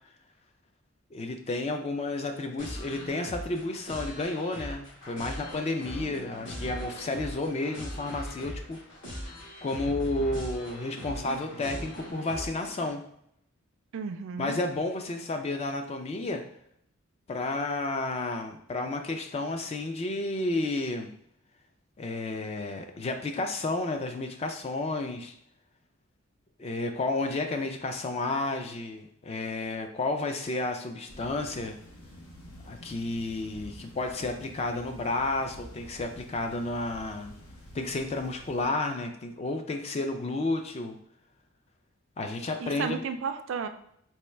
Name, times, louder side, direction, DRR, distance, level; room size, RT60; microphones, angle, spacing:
voice 1, 1.1-8.8 9.2-9.3 9.6-13.0 14.4-16.4 17.3-21.1 22.0-25.3 26.6-31.8 32.7-37.4 37.7-41.0 42.2-43.0, left 2 dB, 30° left, 6 dB, 0.3 m, -31 dB
sound 1, 2.6-12.9, equal, 55° left, 1.5 m, -40 dB
voice 2, 13.9-14.6 42.6-43.7, right 5 dB, 60° right, 8 dB, 0.3 m, -33 dB
sound 2, 31.1-38.7, left 1 dB, 80° left, 0.9 m, -49 dB
4.2 x 2.3 x 3.2 m, 0.72 s
head